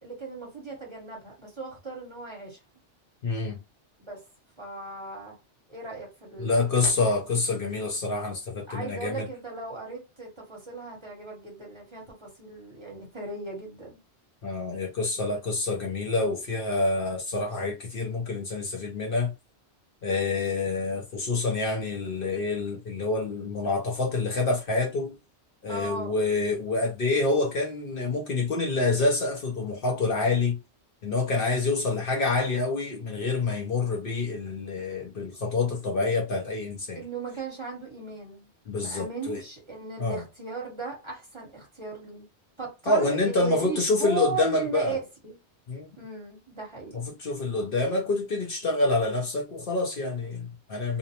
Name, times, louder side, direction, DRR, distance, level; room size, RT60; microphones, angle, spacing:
voice 1, 0.0-2.6 4.0-4.2 4.6-5.4 5.7-7.0 8.7-14.0 25.7-26.2 37.0-38.5 38.8-42.2 42.6-45.4 46.0-47.0, right 4 dB, 25° right, 1.0 m, -37 dB
voice 2, 3.2-3.6 6.4-9.3 14.4-19.3 20.0-25.1 25.6-30.6 31.0-37.0 38.7-39.4 40.0-40.2 42.9-44.9 45.7-45.9 46.9-51.0, left 3 dB, 55° left, 0.8 m, -27 dB
2.6 x 2.0 x 2.8 m
omnidirectional pair, 1.2 m